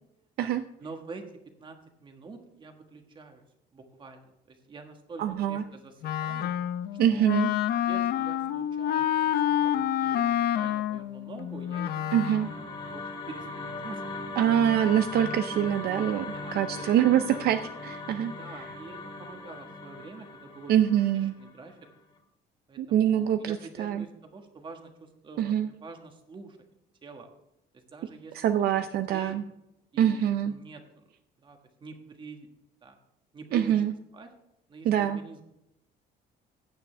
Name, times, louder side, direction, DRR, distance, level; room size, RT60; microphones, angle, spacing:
voice 1, 0.8-1.2 1.6-3.4 3.7-6.5 7.1-7.4 7.8-11.9 12.6-14.2 16.3-16.9 18.1-21.8 22.7-26.6 27.0-27.3 27.7-28.3 28.7-29.4 29.9-31.0 31.4-32.5 32.8-33.0 33.3-33.8 34.1-34.3 34.7-35.4, right 4 dB, 25° right, 5 dB, 1.4 m, -46 dB
voice 2, 5.2-5.6 7.0-7.5 12.1-12.5 14.4-18.7 20.7-21.3 22.8-24.0 25.4-25.7 28.3-29.4 30.0-30.5 33.5-33.9 34.8-35.2, right 10 dB, 60° right, 10 dB, 0.5 m, -25 dB
Wind instrument woodwind instrument, 6.0-12.6, left 11 dB, 60° left, 0.6 m, -28 dB
sound 1, 11.6-21.9, left 3 dB, 30° left, 2.1 m, -39 dB
15.5 x 9.3 x 3.3 m, 0.86 s
cardioid pair, 170°, 18 cm